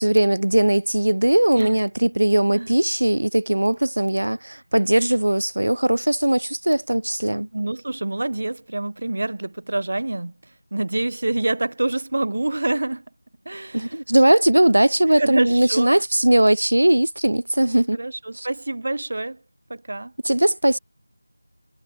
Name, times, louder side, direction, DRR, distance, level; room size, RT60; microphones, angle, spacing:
voice 1, 0.0-7.5 13.7-18.0 18.4-18.5 20.2-20.8, right 1 dB, 80° right, 0.7 m, -19 dB
voice 2, 7.5-13.0 13.4-14.0 15.1-15.9 17.9-19.4 19.7-20.1, right 2 dB, 55° right, 6.2 m, -26 dB
figure-of-eight pair, 175°, 0 cm